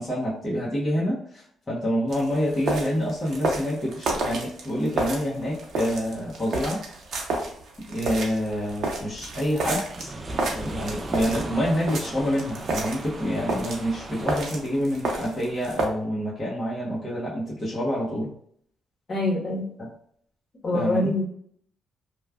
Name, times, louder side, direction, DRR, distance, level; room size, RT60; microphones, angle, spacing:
voice 1, 0.0-6.8 7.9-10.1 10.4-18.3 19.8-19.9 20.7-21.1, equal, 25° left, -7 dB, 1.0 m, -27 dB
sound 1, 2.1-15.8, right 2 dB, 65° right, 0.8 m, -31 dB
sound 2, 8.3-14.4, right 1 dB, 30° right, 0.4 m, -38 dB
voice 2, 19.1-19.7 20.6-21.2, left 1 dB, 45° left, -4 dB, 1.3 m, -25 dB
3.0 x 2.3 x 2.3 m, 0.65 s
cardioid pair, 90°, 0 cm